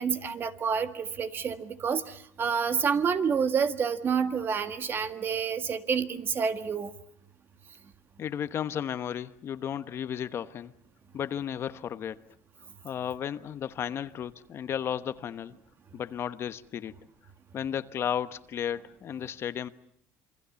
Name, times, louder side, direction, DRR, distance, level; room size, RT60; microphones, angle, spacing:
voice 1, 0.0-6.9, right 6 dB, 35° right, 1.7 m, -28 dB
voice 2, 8.2-10.7 11.1-12.2 12.8-15.6 15.9-16.9 17.5-19.7, left 9 dB, 45° left, 1.1 m, -34 dB
27.5 x 24.0 x 7.0 m
cardioid pair, 115°, 6 cm